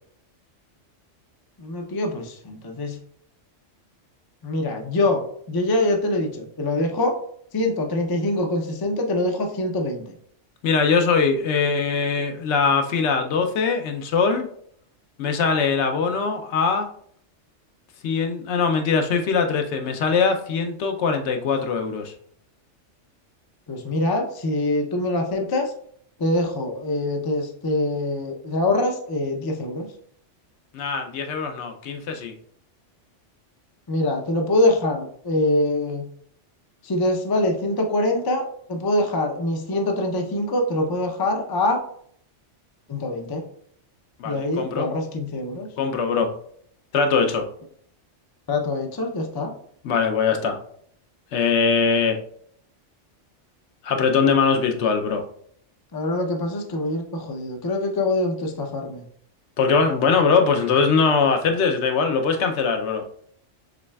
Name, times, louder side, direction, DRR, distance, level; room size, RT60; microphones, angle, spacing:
voice 1, 1.6-3.0 4.4-7.2 7.5-10.0 23.7-25.7 26.2-29.9 33.9-36.1 36.8-41.8 42.9-43.4 44.2-45.7 48.5-49.5 55.9-59.0, left 2 dB, 35° left, 3 dB, 0.4 m, -24 dB
voice 2, 10.6-14.5 15.2-16.9 18.0-22.1 30.7-32.3 44.2-44.9 45.8-46.3 46.9-47.5 49.8-50.6 51.3-52.2 53.8-55.2 59.6-63.0, left 5 dB, 70° left, 5 dB, 0.9 m, -21 dB
6.1 x 3.2 x 2.2 m, 0.63 s
omnidirectional pair, 1.2 m